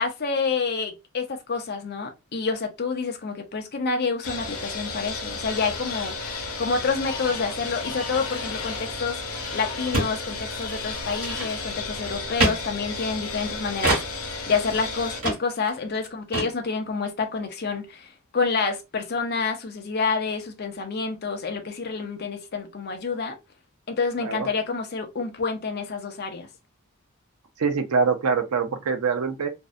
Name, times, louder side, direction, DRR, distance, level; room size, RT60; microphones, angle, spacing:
voice 1, 0.0-9.2 9.5-23.4 23.9-26.5, left 4 dB, 50° left, 0.5 m, -28 dB
sound 1, 4.2-15.2, left 3 dB, 90° left, 0.8 m, -33 dB
sound 2, 9.2-9.3 9.5-9.6 9.9-10.2 10.5-10.7 11.1-11.8 12.4-12.6 13.8-14.1 14.6-14.7 15.2-15.4 15.7-15.8 15.9-16.1 16.3-16.5, right 2 dB, 70° right, 1.3 m, -25 dB
voice 2, 27.6-29.5, right 5 dB, 85° right, 0.5 m, -24 dB
2.6 x 2.1 x 2.4 m
head